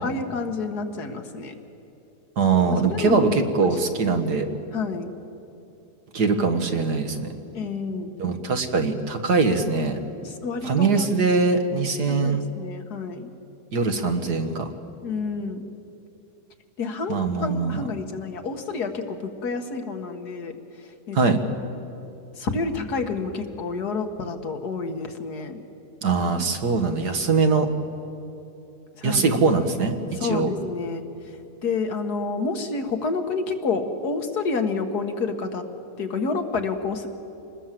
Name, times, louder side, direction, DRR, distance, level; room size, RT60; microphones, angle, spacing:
voice 1, 0.0-1.5 2.7-4.1 4.7-5.1 7.5-8.1 10.2-11.1 12.1-13.3 15.0-15.6 16.8-20.6 21.1-21.2 22.4-25.6 29.0-29.4 30.2-31.0 31.6-35.6 36.0-37.1, left 4 dB, 75° left, 6 dB, 2.1 m, -29 dB
voice 2, 2.4-4.5 6.1-7.3 8.2-10.0 10.6-12.4 13.7-14.6 17.1-17.8 21.1-21.4 26.0-27.7 29.0-30.5, right 4 dB, 80° right, 6 dB, 2.1 m, -22 dB
26.5 x 20.5 x 7.6 m, 2.9 s
omnidirectional pair, 1.7 m